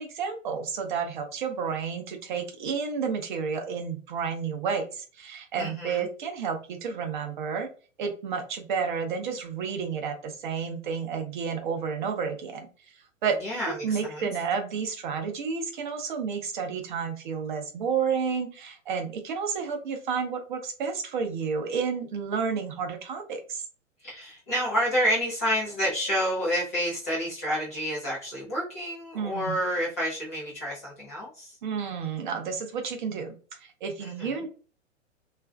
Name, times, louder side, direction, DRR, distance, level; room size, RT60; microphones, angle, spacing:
voice 1, 0.0-7.7 8.0-12.7 13.2-13.3 13.7-23.6 29.1-29.6 31.6-34.5, right 6 dB, 40° right, 5 dB, 0.6 m, -31 dB
voice 2, 5.6-6.1 13.4-14.3 24.0-31.5 34.0-34.4, equal, 15° left, -8 dB, 0.3 m, -29 dB
3.0 x 2.4 x 2.3 m, 0.37 s
figure-of-eight pair, 115°, 39 cm